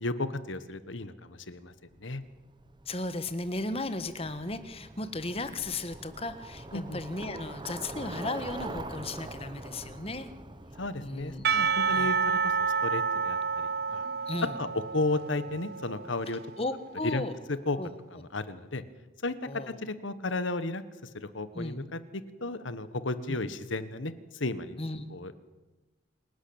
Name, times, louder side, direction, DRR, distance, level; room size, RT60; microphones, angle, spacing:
voice 1, 0.0-1.7 2.0-2.2 6.7-7.0 10.8-12.4 12.8-14.1 14.6-14.7 14.9-16.4 17.0-17.2 17.5-17.8 18.1-18.8 19.2-19.3 19.8-20.8 21.1-24.8 25.1-25.3, left 2 dB, 80° left, 13 dB, 1.4 m, -33 dB
Bicycle, 1.9-12.8, right 2 dB, 25° right, 1.1 m, -44 dB
voice 2, 2.8-10.3 11.0-11.4 11.9-12.1 14.3-14.6 16.6-17.3 17.8-17.9 19.4-19.8 21.5-21.8 23.3-23.4 24.8-25.0, left 2 dB, 30° left, 11 dB, 1.5 m, -35 dB
Percussion / Church bell, 11.4-16.7, right 6 dB, 55° right, 0.6 m, -29 dB
27.5 x 12.0 x 8.8 m, 1.1 s
head